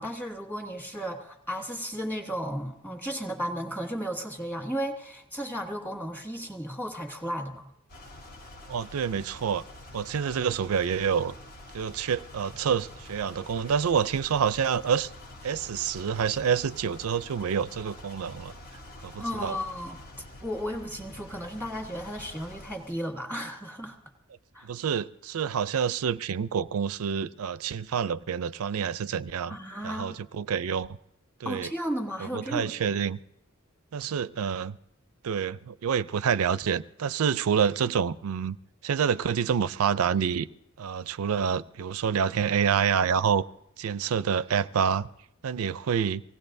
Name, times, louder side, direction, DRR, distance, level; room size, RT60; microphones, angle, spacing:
voice 1, 0.0-7.7 19.2-20.0 20.4-24.0 24.5-24.7 29.5-30.2 31.4-33.0, equal, 10° left, 1.5 m, -34 dB
sound 1, 7.9-23.0, left 1 dB, 45° left, 1.1 m, -47 dB
voice 2, 8.7-9.6 9.9-11.3 11.7-15.1 15.4-18.5 19.0-19.6 24.7-29.6 29.8-31.0 31.4-31.7 32.3-33.2 33.9-34.8 35.2-38.6 38.8-40.5 40.8-43.4 43.8-45.1 45.4-46.2, right 7 dB, 80° right, 0.4 m, -27 dB
24.0 x 17.5 x 2.6 m
head